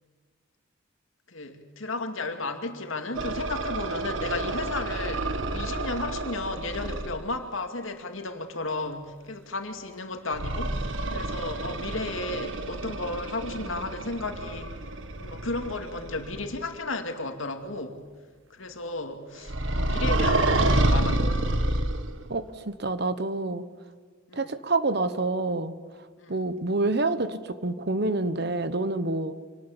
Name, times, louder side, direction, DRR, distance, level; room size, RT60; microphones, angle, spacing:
voice 1, 1.3-14.7 15.2-18.0 18.5-21.3 24.3-24.5 26.2-26.4, left 2 dB, 80° left, 5 dB, 2.4 m, -34 dB
sound 1, 3.1-7.2 10.3-16.6 19.5-22.3, right 1 dB, 70° right, 1.6 m, -28 dB
voice 2, 22.3-23.6 24.3-25.7 26.3-29.3, right 2 dB, 55° right, 12 dB, 1.2 m, -27 dB
26.0 x 19.0 x 7.4 m, 1.5 s
head